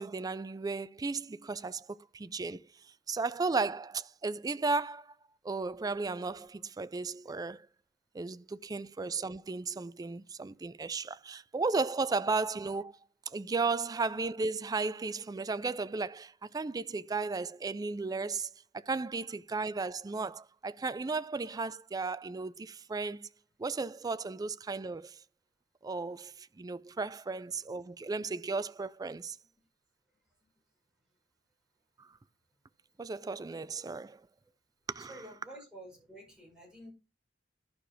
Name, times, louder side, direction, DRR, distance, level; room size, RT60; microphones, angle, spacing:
voice 1, 0.0-1.9 2.1-2.6 3.1-5.1 5.4-7.7 8.1-13.0 13.3-23.3 23.6-25.2 25.8-29.4 32.0-32.1 33.0-34.2 34.9-35.1, right 4 dB, 20° right, 0.3 m, -35 dB
voice 2, 35.0-36.9, right 1 dB, 5° right, 5.3 m, -50 dB
11.5 x 5.0 x 4.4 m
head